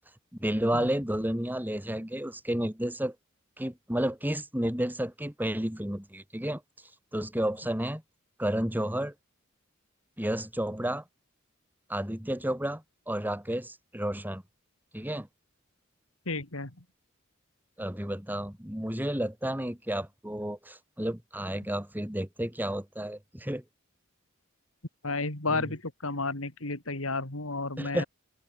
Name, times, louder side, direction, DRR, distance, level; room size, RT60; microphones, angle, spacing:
voice 1, 0.3-3.1 3.6-6.6 7.1-8.0 8.4-9.1 10.2-11.0 11.9-14.4 14.9-15.3 17.8-23.6 25.5-25.7 27.8-28.0, right 1 dB, 10° right, 3.1 m, -31 dB
voice 2, 16.3-16.7 25.0-28.1, left 3 dB, 80° left, 3.3 m, -32 dB
open air
head